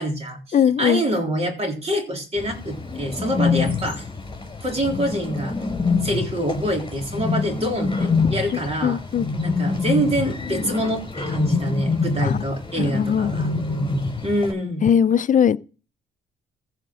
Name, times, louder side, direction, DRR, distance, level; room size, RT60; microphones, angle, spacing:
voice 1, 0.0-4.1 4.6-5.5 6.0-9.0 9.4-13.5 14.2-14.8, right 1 dB, 30° right, 3.6 m, -25 dB
voice 2, 0.5-1.0 8.2-8.3 8.8-9.2 12.2-12.4 12.8-13.3 14.8-15.6, left 8 dB, 40° left, 0.6 m, -19 dB
Bird, 2.4-14.5, left 4 dB, 20° left, 5.4 m, -26 dB
15.0 x 5.1 x 6.4 m
cardioid pair, 90°, 20 cm